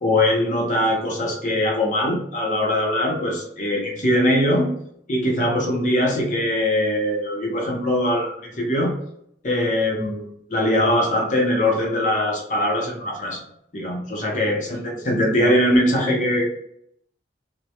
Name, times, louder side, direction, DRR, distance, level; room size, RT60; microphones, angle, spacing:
voice 1, 0.0-4.7 5.1-8.9 9.4-13.4 13.7-16.5, left 1 dB, 45° left, -1 dB, 0.7 m, -21 dB
2.2 x 2.1 x 2.7 m, 0.72 s
head